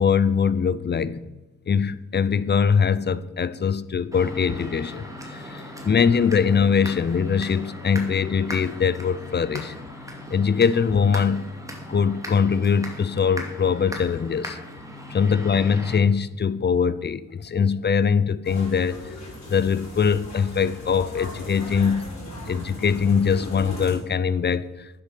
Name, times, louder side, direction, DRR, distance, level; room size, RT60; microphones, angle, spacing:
voice 1, 0.0-1.4 1.7-9.7 10.3-11.5 11.9-14.6 15.1-19.0 19.5-22.1 22.5-25.0, left 6 dB, 35° left, 0.5 m, -22 dB
sound 1, 4.1-16.0, equal, 10° right, 2.5 m, -38 dB
sound 2, 18.4-23.9, left 1 dB, 55° left, 4.2 m, -37 dB
9.7 x 7.7 x 6.5 m
cardioid pair, 75°, 32 cm